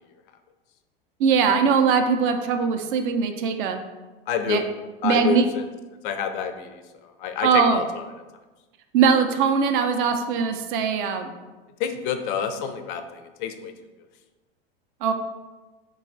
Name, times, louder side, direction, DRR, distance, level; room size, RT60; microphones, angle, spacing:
voice 1, 1.2-3.8 4.5-4.6 5.0-5.5 7.4-7.8 8.9-11.3 15.0-15.1, right 6 dB, 60° right, 6 dB, 0.5 m, -21 dB
voice 2, 4.3-4.6 5.0-5.6 6.0-6.8 7.2-7.8 11.8-13.7, left 7 dB, 60° left, 8 dB, 0.4 m, -27 dB
3.9 x 2.3 x 2.5 m, 1.2 s
hypercardioid pair, 90°, 29 cm